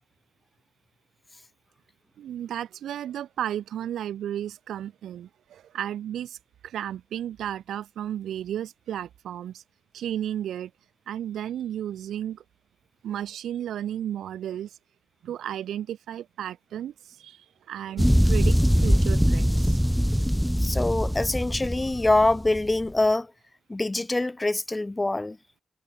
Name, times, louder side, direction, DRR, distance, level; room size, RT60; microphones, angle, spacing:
voice 1, 2.2-6.4 6.6-9.6 9.9-10.7 11.1-12.4 13.0-14.8 15.2-19.8, right 10 dB, 85° right, 1.8 m, -33 dB
sound 1, 18.0-22.8, equal, ahead, 1.2 m, -22 dB
voice 2, 20.6-23.3 23.7-25.4, left 2 dB, 20° left, 0.7 m, -24 dB
cardioid pair, 65°, 0 cm